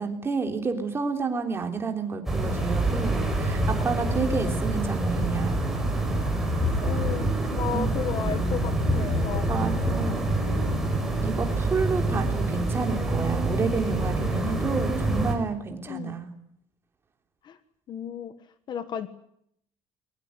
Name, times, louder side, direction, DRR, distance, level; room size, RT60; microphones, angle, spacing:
voice 1, 0.0-5.6 7.7-7.9 9.5-10.2 11.2-16.3, right 5 dB, 20° right, 4 dB, 3.6 m, -30 dB
sound 1, 2.3-15.4, right 1 dB, ahead, 4.9 m, -26 dB
voice 2, 6.5-9.5 9.9-10.1 10.5-10.8 15.9-16.2 17.4-17.6 17.9-18.3 18.7-19.1, left 8 dB, 35° left, 12 dB, 1.4 m, -34 dB
22.0 x 21.0 x 9.8 m, 0.71 s
cardioid pair, 170°, 12 cm